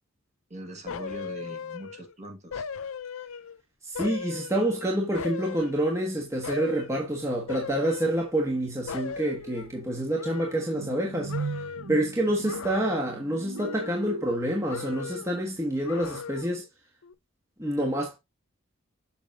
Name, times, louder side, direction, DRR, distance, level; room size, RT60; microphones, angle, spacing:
voice 1, 0.5-2.7, right 1 dB, 30° right, 1.7 m, -41 dB
sound 1, 0.9-2.1 2.5-3.6 4.0-6.1 6.4-7.0 7.5-8.6 8.9-11.0 11.3-12.0 12.4-13.3 13.6-14.4 14.7-15.4 15.8-16.7 17.0-17.1, left 6 dB, 75° left, 0.5 m, -38 dB
voice 2, 3.8-11.3 11.9-16.6 17.6-18.2, right 1 dB, 15° right, 1.3 m, -27 dB
sound 2, 8.6-8.7 9.1-15.2, right 4 dB, 70° right, 0.6 m, -39 dB
7.1 x 6.0 x 2.7 m
head